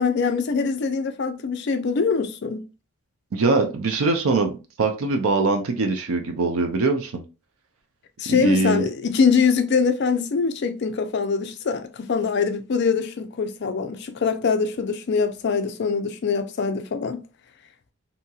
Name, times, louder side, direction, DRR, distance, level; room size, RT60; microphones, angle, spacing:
voice 1, 0.0-2.7 8.2-17.2, left 5 dB, 50° left, 0.4 m, -23 dB
voice 2, 3.3-7.2 8.3-8.9, right 3 dB, 75° right, 0.5 m, -22 dB
2.8 x 2.8 x 2.3 m
head